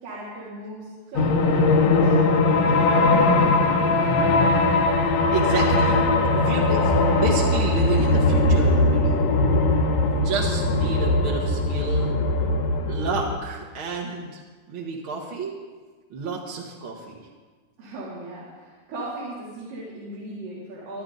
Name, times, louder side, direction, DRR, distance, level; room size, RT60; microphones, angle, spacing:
voice 1, 0.0-2.4 17.8-21.0, right 1 dB, 80° right, -8 dB, 4.7 m, -37 dB
sound 1, 1.2-13.4, left 2 dB, 65° left, 2.0 m, -20 dB
voice 2, 5.3-6.0 6.3-9.2 10.0-12.1 12.9-14.4 14.7-15.5 16.1-17.2, right 4 dB, 50° right, -2 dB, 1.8 m, -30 dB
24.0 x 11.0 x 3.9 m, 1.4 s
omnidirectional pair, 3.9 m